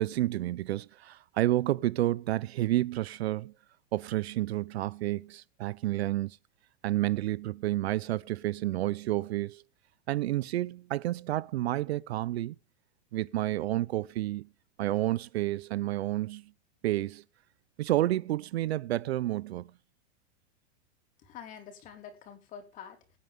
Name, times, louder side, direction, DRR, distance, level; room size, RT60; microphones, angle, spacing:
voice 1, 0.0-3.5 3.9-6.4 6.8-9.6 10.1-12.5 13.1-14.5 14.8-16.4 16.8-17.2 17.8-19.7, right 15 dB, 65° right, 0.6 m, -30 dB
voice 2, 21.2-23.2, left 8 dB, 20° left, 3.3 m, -47 dB
22.5 x 9.3 x 3.5 m
supercardioid pair, 175°, 35 cm